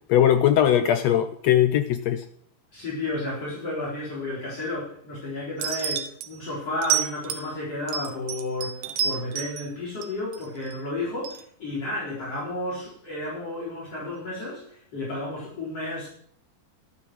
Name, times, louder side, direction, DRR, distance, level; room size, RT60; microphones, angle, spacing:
voice 1, 0.1-2.2, left 10 dB, 85° left, 10 dB, 1.5 m, -20 dB
voice 2, 2.7-16.1, left 2 dB, 45° left, -5 dB, 5.1 m, -32 dB
sound 1, 5.6-6.3 6.8-7.5 7.9-9.6 10.0-10.8 11.2-11.4, right 9 dB, 85° right, 2.7 m, -28 dB
12.5 x 8.8 x 6.2 m, 0.63 s
omnidirectional pair, 3.8 m